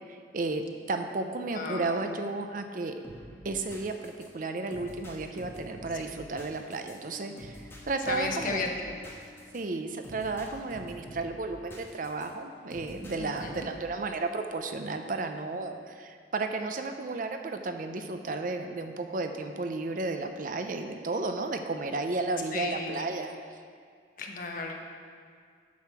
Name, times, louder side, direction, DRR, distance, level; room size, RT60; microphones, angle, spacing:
voice 1, 0.1-3.0 3.4-8.7 9.5-23.4, right 3 dB, 50° right, 6 dB, 0.6 m, -33 dB
voice 2, 1.5-1.9 5.9-6.0 8.1-9.0 13.2-13.7 22.5-23.0 24.2-24.7, left 3 dB, 50° left, 1 dB, 1.0 m, -34 dB
sound 1, 3.0-12.3 12.7-13.8, equal, 15° left, 1.3 m, -47 dB
8.3 x 6.4 x 5.9 m, 2.1 s
head